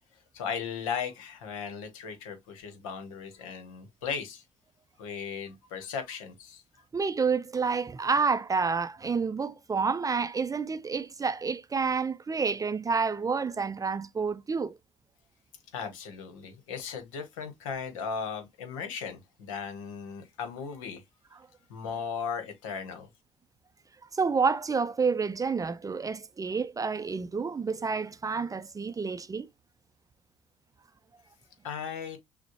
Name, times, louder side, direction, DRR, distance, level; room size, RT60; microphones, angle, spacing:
voice 1, 0.3-4.4 5.0-6.6 15.7-21.0 21.7-23.1 31.6-32.2, left 6 dB, 85° left, 1.0 m, -37 dB
voice 2, 6.9-14.7 24.1-29.5, right 5 dB, 20° right, 0.4 m, -29 dB
6.0 x 2.1 x 2.9 m
hypercardioid pair, 65°, 16 cm